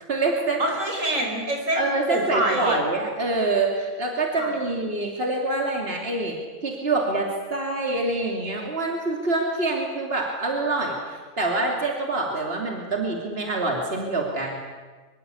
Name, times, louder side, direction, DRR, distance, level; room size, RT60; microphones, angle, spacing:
voice 1, 0.1-0.8 1.7-6.4 6.6-14.6, right 2 dB, 50° right, 0 dB, 3.2 m, -26 dB
voice 2, 0.6-2.8 4.4-4.5, right 1 dB, 85° right, 1 dB, 5.8 m, -26 dB
24.5 x 23.5 x 8.5 m, 1.4 s
omnidirectional pair, 1.3 m